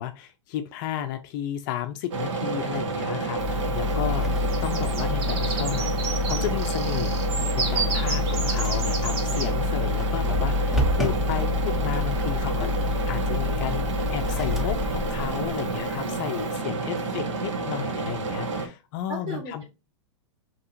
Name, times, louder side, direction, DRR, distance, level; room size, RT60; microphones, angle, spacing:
voice 1, 0.0-5.9 6.3-7.3 7.6-13.8 14.1-19.6, left 11 dB, 40° left, 0.5 m, -33 dB
sound 1, 2.1-18.7, right 3 dB, 75° right, 1.1 m, -30 dB
sound 2, 3.4-16.5, left 3 dB, ahead, 0.6 m, -28 dB
sound 3, 4.5-9.5, right 5 dB, 60° right, 1.3 m, -32 dB
voice 2, 19.1-19.7, right 2 dB, 30° right, 1.5 m, -38 dB
5.4 x 2.9 x 2.6 m
hypercardioid pair, 140°, 16 cm